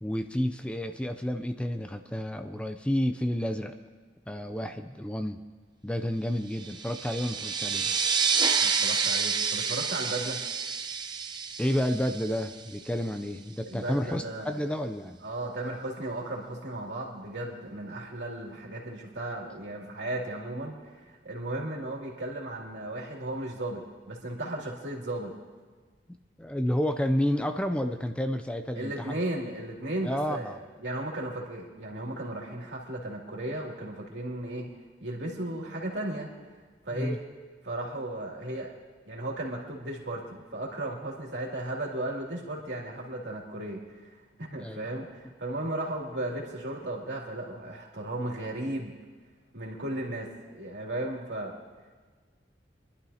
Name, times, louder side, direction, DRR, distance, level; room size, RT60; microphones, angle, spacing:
voice 1, 0.0-3.8 4.3-5.4 5.8-7.9 11.6-15.2 26.4-29.2 30.0-30.6 36.9-37.2 44.6-44.9, equal, 5° left, 7 dB, 0.4 m, -30 dB
sound 1, 6.6-12.8, right 6 dB, 25° right, 0.7 m, -29 dB
voice 2, 8.6-10.4 13.7-14.6 15.2-25.3 28.8-34.7 35.0-36.3 36.8-37.2 37.6-38.7 39.1-49.0 49.5-51.5, right 1 dB, 75° right, -2 dB, 2.6 m, -35 dB
25.5 x 11.5 x 2.8 m, 1.4 s
head